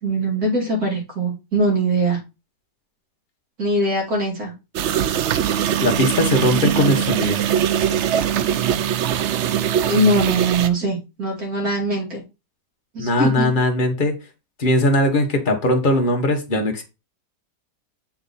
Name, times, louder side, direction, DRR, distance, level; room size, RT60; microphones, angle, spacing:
voice 1, 0.0-2.2 3.6-4.5 9.9-12.2 12.9-13.5, right 2 dB, 60° right, 2.9 m, -21 dB
sound 1, 4.7-10.7, right 9 dB, 85° right, 0.6 m, -21 dB
voice 2, 5.8-7.4 13.0-14.2 14.6-16.8, left 1 dB, 35° left, 1.3 m, -19 dB
7.0 x 3.7 x 4.0 m
omnidirectional pair, 1.8 m